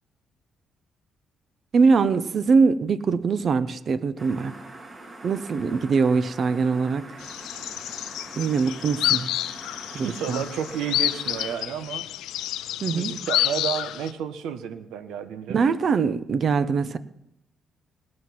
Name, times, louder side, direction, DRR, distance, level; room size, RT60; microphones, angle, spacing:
voice 1, 1.7-4.6 5.2-7.2 8.4-9.3 9.9-10.4 12.8-13.2 15.5-17.0, right 5 dB, 50° right, 14 dB, 0.7 m, -22 dB
sound 1, 4.2-11.6, right 2 dB, 30° right, 1.9 m, -44 dB
sound 2, 7.2-14.1, left 13 dB, 85° left, 0.5 m, -29 dB
voice 2, 10.0-12.0 12.9-15.6, right 9 dB, 90° right, 10 dB, 1.2 m, -31 dB
20.5 x 7.7 x 5.9 m, 0.84 s
cardioid pair, 90°, 0 cm